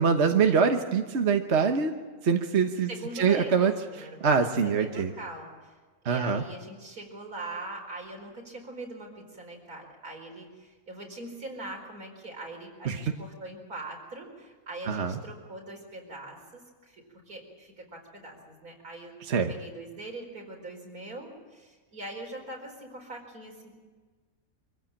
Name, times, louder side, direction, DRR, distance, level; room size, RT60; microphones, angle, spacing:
voice 1, 0.0-1.9 2.2-2.9 3.2-3.7 4.2-5.1 6.0-6.4 12.8-13.0 14.9-15.2 19.3-19.5, right 6 dB, 50° right, 5 dB, 1.4 m, -24 dB
voice 2, 2.9-4.3 4.6-5.8 6.0-23.7, right 2 dB, 80° right, 1 dB, 5.1 m, -42 dB
25.0 x 15.5 x 8.8 m, 1.4 s
omnidirectional pair, 1.5 m